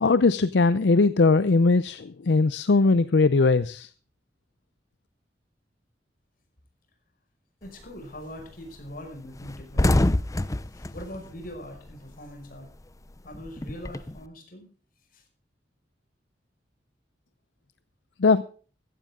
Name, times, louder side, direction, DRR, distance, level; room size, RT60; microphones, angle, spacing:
voice 1, 0.0-3.9 18.2-18.4, left 3 dB, 75° left, 15 dB, 0.6 m, -20 dB
voice 2, 7.6-10.1 10.4-12.7 13.2-14.7 15.1-15.2, equal, 55° left, 3 dB, 5.4 m, -42 dB
sound 1, 7.7-8.0 8.4-8.5 8.8-8.9 9.2-12.2 12.5-14.2, left 1 dB, 20° left, 0.6 m, -26 dB
15.0 x 14.5 x 3.7 m, 0.40 s
head